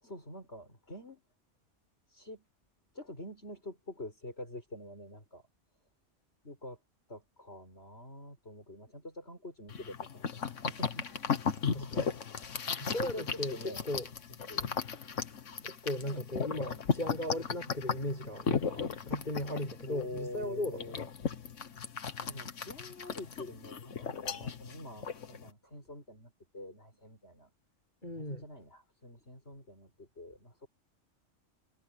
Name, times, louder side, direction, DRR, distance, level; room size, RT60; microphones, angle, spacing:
voice 1, 0.0-1.2 2.1-2.5 2.9-5.5 6.4-6.8 7.1-12.1 13.0-13.8 14.5-14.7 16.0-16.3 19.9-21.1 22.2-27.5 28.1-30.7, left 1 dB, 55° left, 7.5 m, -46 dB
sound 1, 9.7-25.5, left 6 dB, 75° left, 1.7 m, -36 dB
voice 2, 11.7-12.1 12.8-14.1 15.6-21.0 28.0-28.5, left 1 dB, 40° left, 7.0 m, -37 dB
omnidirectional pair, 1.3 m